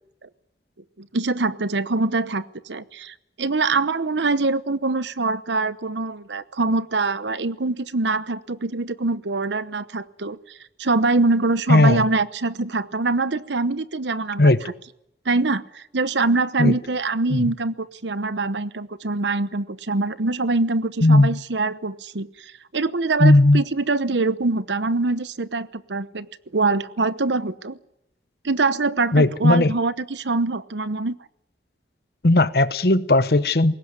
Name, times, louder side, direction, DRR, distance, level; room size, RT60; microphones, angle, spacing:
voice 1, 1.0-14.5 15.2-26.3 26.5-27.8 28.4-31.1, right 3 dB, 85° right, 1.0 m, -24 dB
voice 2, 11.7-12.1 14.4-14.6 16.6-16.7 17.3-17.5 21.0-21.4 23.2-23.6 29.1-29.7 32.2-33.7, left 2 dB, 60° left, 1.0 m, -16 dB
21.5 x 18.5 x 9.8 m
head